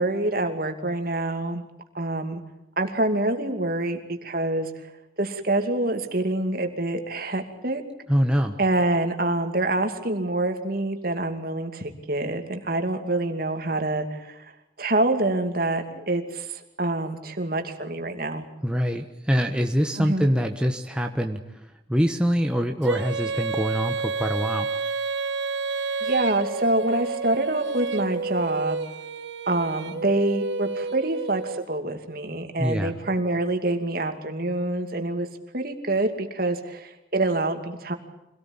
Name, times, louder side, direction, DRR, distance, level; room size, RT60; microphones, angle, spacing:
voice 1, 0.0-1.6 1.9-2.4 2.8-4.7 5.2-7.8 8.6-14.5 14.8-18.5 20.0-20.3 26.0-28.8 29.5-35.3 35.5-37.9, right 2 dB, 50° right, 5 dB, 2.6 m, -26 dB
voice 2, 8.1-8.6 18.6-21.6 21.9-24.8 32.6-32.9, equal, 5° right, 3 dB, 1.2 m, -24 dB
Female singing, 22.8-31.6, right 4 dB, 80° right, 1.7 m, -30 dB
25.5 x 18.0 x 8.9 m, 0.88 s
head